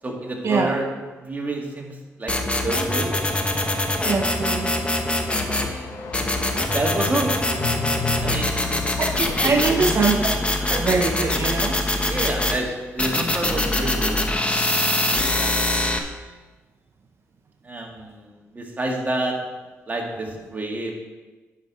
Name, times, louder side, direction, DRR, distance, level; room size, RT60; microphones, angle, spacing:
voice 1, 0.0-0.8 1.2-2.3 2.6-3.1 5.3-6.0 6.7-7.6 8.2-8.5 9.4-10.1 12.1-14.4 14.7-14.9 15.1-15.5 17.6-19.4 19.9-20.9, right 1 dB, 30° right, 0 dB, 2.1 m, -29 dB
sound 1, 2.3-5.7 6.1-12.6 13.0-16.0, left 1 dB, 20° left, 1.1 m, -23 dB
voice 2, 4.0-4.7 9.0-10.3 10.7-11.7, right 4 dB, 50° right, 3 dB, 0.8 m, -23 dB
sound 2, 5.4-10.9, left 4 dB, 75° left, 0.9 m, -34 dB
10.5 x 5.7 x 4.8 m, 1.3 s
cardioid pair, 75°, 6 cm